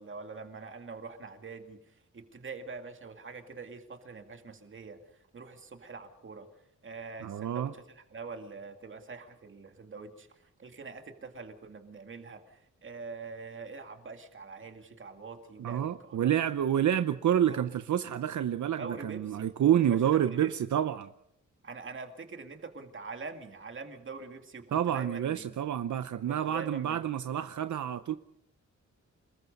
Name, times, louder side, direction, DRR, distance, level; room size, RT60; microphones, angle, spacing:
voice 1, 0.0-5.0 5.3-6.5 6.8-16.3 17.5-17.6 18.8-19.4 19.8-20.5 21.6-25.5 26.3-27.0, right 4 dB, 40° right, 2.2 m, -44 dB
voice 2, 7.2-7.7 15.6-21.1 24.7-28.1, right 10 dB, 75° right, 0.8 m, -28 dB
28.0 x 20.0 x 5.4 m
wide cardioid pair, 175°, 30 cm